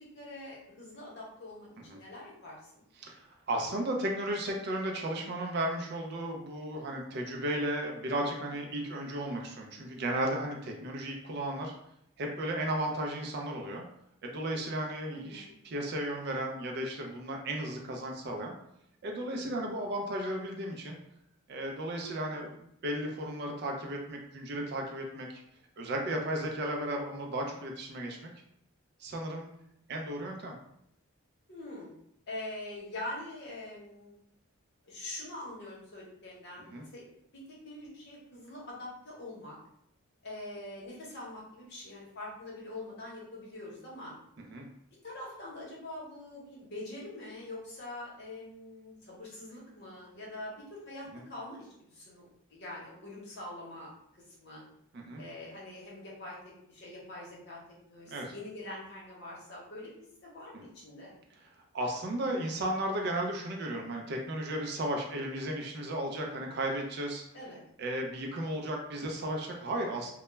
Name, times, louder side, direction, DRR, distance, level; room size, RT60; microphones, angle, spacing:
voice 1, 0.0-2.8 15.1-15.5 31.5-31.9 32.3-34.1 34.8-36.7 36.9-37.1 37.3-39.6 40.2-44.1 45.0-53.9 54.3-54.6 55.2-56.4 56.7-57.6 57.9-61.1 67.3-67.6, left 1 dB, 50° left, -4 dB, 0.8 m, -44 dB
voice 2, 3.0-11.7 12.2-13.8 14.2-18.5 19.0-21.0 21.5-25.4 25.8-28.3 29.0-29.5 29.9-30.6 36.7-36.8 44.4-44.7 51.1-51.2 54.9-55.2 58.1-58.3 60.5-60.6 61.4-61.5 61.7-67.2 67.8-70.1, right 1 dB, 50° right, 1 dB, 0.4 m, -34 dB
2.2 x 2.1 x 3.0 m, 0.73 s
head